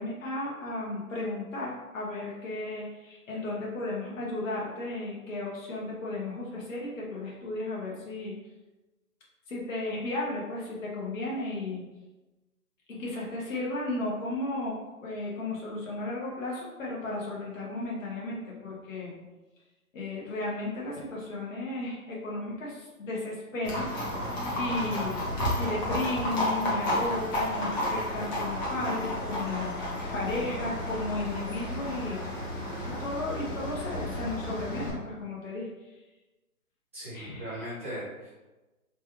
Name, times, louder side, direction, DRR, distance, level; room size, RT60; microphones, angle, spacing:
voice 1, 0.0-8.4 9.5-11.8 12.9-14.7 15.0-19.1 19.9-25.3 25.6-32.3 33.0-35.9 37.1-37.6, left 2 dB, 60° left, -4 dB, 1.0 m, -34 dB
Livestock farm animals working animals, 23.6-34.9, left 1 dB, 30° left, 0.8 m, -32 dB
voice 2, 36.9-38.3, equal, 10° right, -14 dB, 0.5 m, -38 dB
3.2 x 2.3 x 3.0 m, 1.1 s
hypercardioid pair, 140°, 45 cm